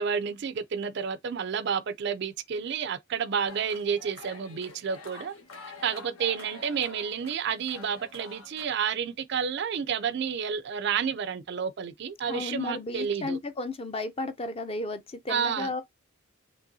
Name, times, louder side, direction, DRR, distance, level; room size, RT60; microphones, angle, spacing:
voice 1, 0.0-5.3 5.8-13.4 15.3-15.8, right 7 dB, 50° right, 0.4 m, -30 dB
sound 1, 3.5-8.7, left 3 dB, 80° left, 1.4 m, -47 dB
voice 2, 12.3-15.8, left 3 dB, 25° left, 0.5 m, -33 dB
5.4 x 3.0 x 2.6 m
head